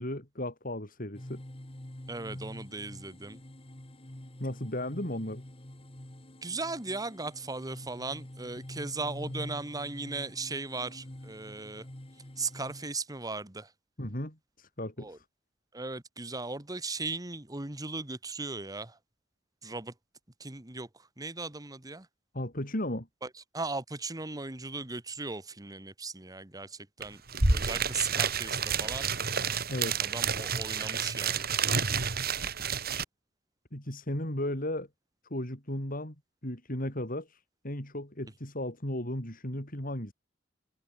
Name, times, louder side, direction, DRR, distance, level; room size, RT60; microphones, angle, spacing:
voice 1, 0.0-1.4 4.4-5.4 14.0-15.2 22.3-23.1 29.3-30.1 33.7-34.9 35.3-36.2 36.4-40.1, left 1 dB, 45° left, 6.9 m, -35 dB
sound 1, 1.1-12.9, left 1 dB, 30° left, 2.0 m, -46 dB
voice 2, 2.1-3.4 6.4-11.8 12.4-13.7 15.0-15.2 15.7-19.0 19.6-19.9 20.4-20.9 21.2-22.1 23.2-27.2 27.5-29.1 30.0-31.5, right 3 dB, 20° right, 1.5 m, -37 dB
sound 2, 27.0-27.1 27.3-33.0, right 5 dB, 55° right, 3.2 m, -29 dB
head